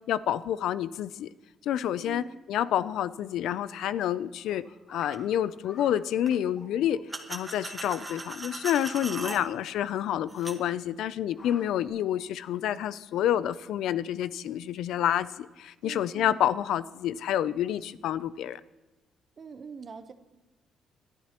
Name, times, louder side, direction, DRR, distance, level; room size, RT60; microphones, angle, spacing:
voice 1, 0.1-1.3 1.6-7.0 7.3-18.6, left 11 dB, 80° left, 16 dB, 0.4 m, -28 dB
voice 2, 2.0-2.4 9.2-9.5 15.8-16.4 19.4-20.1, right 5 dB, 45° right, 10 dB, 0.9 m, -44 dB
sound 1, 4.4-5.2 5.6-6.0 6.5-7.2 7.9-8.2 8.5-8.6 8.8-8.9 9.3-9.4 11.1-11.9, left 3 dB, 55° left, 5.1 m, -48 dB
sound 2, 5.0-5.2 6.3-6.4 7.1-9.4 10.3-10.6, right 2 dB, 20° right, 1.4 m, -38 dB
22.5 x 11.5 x 2.9 m, 1.1 s
cardioid pair, 90°, 0 cm